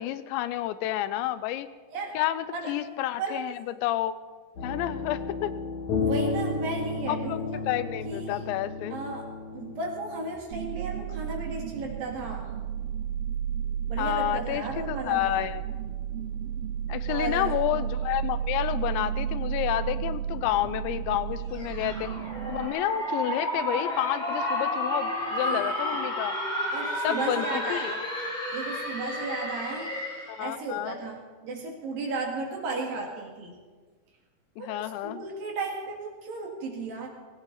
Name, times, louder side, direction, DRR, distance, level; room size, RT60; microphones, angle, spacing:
voice 1, 0.0-1.7 2.1-3.5 3.8-4.2 4.6-5.5 7.1-7.4 7.7-9.0 14.0-15.6 16.9-22.1 22.5-26.4 27.0-27.9 30.3-31.0 34.6-35.2, left 13 dB, 85° left, 13 dB, 3.0 m, -30 dB
sound 1, 4.6-10.3, left 4 dB, 50° left, 2.9 m, -32 dB
voice 2, 6.0-7.7 8.1-8.4 8.9-9.3 9.5-12.5 13.9-15.4 17.1-17.6 25.4-25.7 26.7-28.0 28.5-29.9 30.4-33.6 34.6-37.1, right 3 dB, 55° right, 0 dB, 3.5 m, -34 dB
sound 2, 10.5-22.7, right 9 dB, 80° right, 2.3 m, -32 dB
sound 3, 21.5-30.4, equal, 10° left, 3.2 m, -31 dB
18.0 x 17.0 x 4.1 m, 1.4 s
omnidirectional pair, 5.1 m